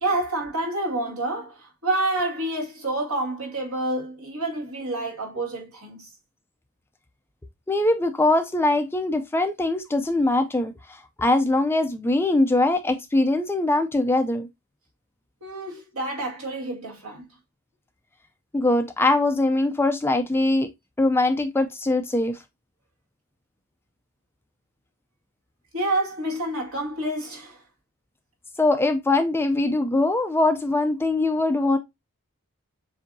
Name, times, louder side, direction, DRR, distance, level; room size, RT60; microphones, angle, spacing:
voice 1, 0.0-6.1 15.4-17.2 25.7-27.6, right 2 dB, 70° right, 1.9 m, -28 dB
voice 2, 7.7-14.5 18.5-20.7 21.0-22.4 28.6-31.8, left 2 dB, 10° left, 0.4 m, -22 dB
7.1 x 2.7 x 2.6 m
head